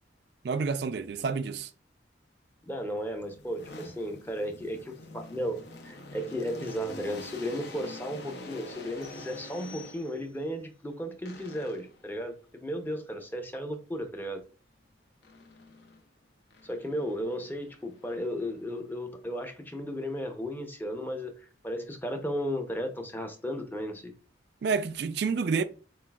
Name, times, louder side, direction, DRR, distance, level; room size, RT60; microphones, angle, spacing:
voice 1, 0.4-1.7 24.6-25.6, right 5 dB, 60° right, 0.4 m, -29 dB
voice 2, 2.6-14.4 16.6-24.1, equal, 10° left, 0.7 m, -35 dB
sound 1, 2.7-10.4 11.3-12.1 15.2-16.0 16.5-18.9, left 2 dB, 60° left, 0.8 m, -47 dB
sound 2, 9.0-10.5, left 4 dB, 30° left, 2.3 m, -52 dB
7.3 x 2.5 x 2.3 m
head